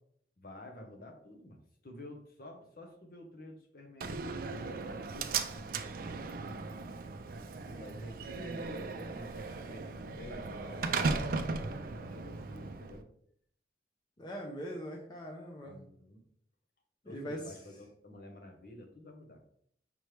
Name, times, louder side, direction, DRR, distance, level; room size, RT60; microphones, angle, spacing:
voice 1, 0.4-6.5 7.7-11.3 11.7-13.1 15.6-16.2 17.0-19.4, left 1 dB, 55° left, 3 dB, 0.9 m, -50 dB
Slam, 4.0-13.0, right 4 dB, 50° right, 0.4 m, -37 dB
voice 2, 14.2-15.8 17.1-17.4, equal, 25° left, 0 dB, 0.6 m, -41 dB
5.3 x 3.1 x 3.2 m, 0.65 s
head